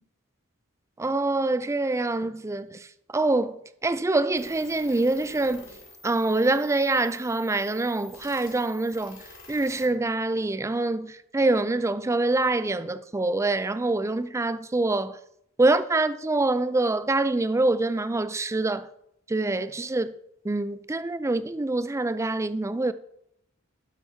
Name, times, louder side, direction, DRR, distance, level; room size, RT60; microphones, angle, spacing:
voice 1, 1.0-2.9 3.1-5.7 6.0-15.2 15.6-18.9 19.3-20.1 20.4-22.9, right 2 dB, 15° right, 0.4 m, -25 dB
sound 1, 4.4-9.9, left 2 dB, 70° left, 3.6 m, -49 dB
12.0 x 5.9 x 4.4 m
head